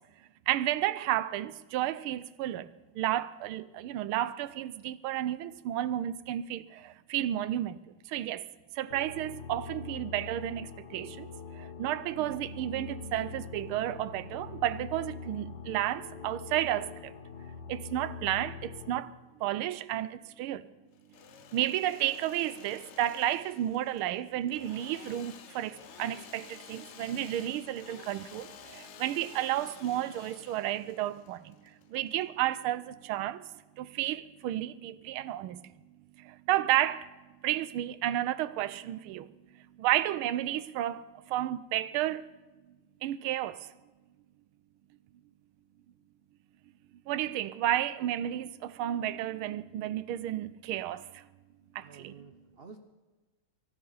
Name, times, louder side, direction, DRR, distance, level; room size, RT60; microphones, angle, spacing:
voice 1, 0.5-2.7 2.9-8.5 8.7-17.1 17.7-19.1 19.4-20.7 21.5-33.5 33.8-35.7 36.2-37.1 37.4-42.3 43.0-43.7 47.1-51.3 51.7-52.1, right 13 dB, 90° right, 1.5 m, -32 dB
sound 1, 8.9-19.0, left 5 dB, 55° left, 1.8 m, -44 dB
Engine / Sawing, 20.9-32.6, left 8 dB, 85° left, 0.6 m, -52 dB
voice 2, 51.7-52.8, right 5 dB, 65° right, 0.6 m, -51 dB
23.0 x 12.5 x 4.0 m
omnidirectional pair, 2.3 m